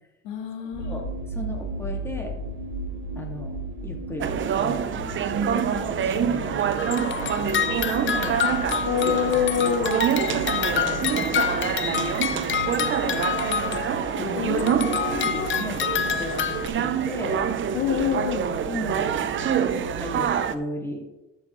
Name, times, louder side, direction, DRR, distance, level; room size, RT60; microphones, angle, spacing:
voice 1, 0.2-1.0 8.8-10.0 14.3-15.5 17.7-18.5, left 9 dB, 85° left, 4 dB, 1.7 m, -26 dB
sound 1, 0.7-20.2, right 2 dB, 75° right, 2.8 m, -37 dB
voice 2, 0.8-2.3 3.2-3.6 3.8-5.1 5.4-8.4 9.0-9.1 10.3-13.9 14.1-14.4 14.8-17.5 18.7-19.1 19.7-21.2, left 1 dB, 10° left, 0 dB, 2.1 m, -36 dB
sound 2, 4.2-20.6, right 8 dB, 40° right, 0.7 m, -26 dB
sound 3, 6.8-14.2 14.6-16.7, left 8 dB, 40° left, 0.7 m, -28 dB
13.5 x 7.2 x 3.2 m, 0.97 s
cardioid pair, 115°, 30 cm